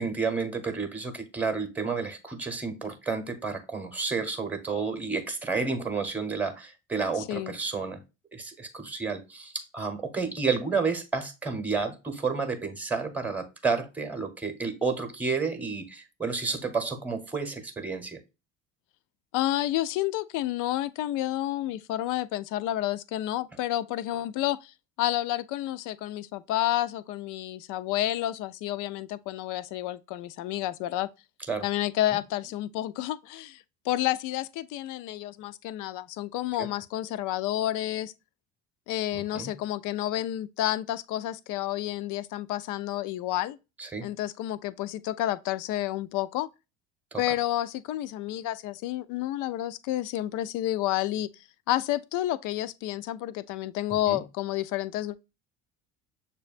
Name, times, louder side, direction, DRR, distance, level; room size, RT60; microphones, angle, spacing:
voice 1, 0.0-8.0 8.3-18.2 31.5-31.6 36.6-36.7 39.1-39.5 43.8-44.1 47.1-47.2 54.1-54.2, right 4 dB, 5° right, 0.9 m, -31 dB
voice 2, 19.3-31.1 31.6-38.1 38.9-43.6 44.0-46.5 47.2-51.3 51.7-55.2, left 14 dB, 55° left, 0.5 m, -30 dB
6.7 x 2.2 x 2.4 m
hypercardioid pair, 75°, 38 cm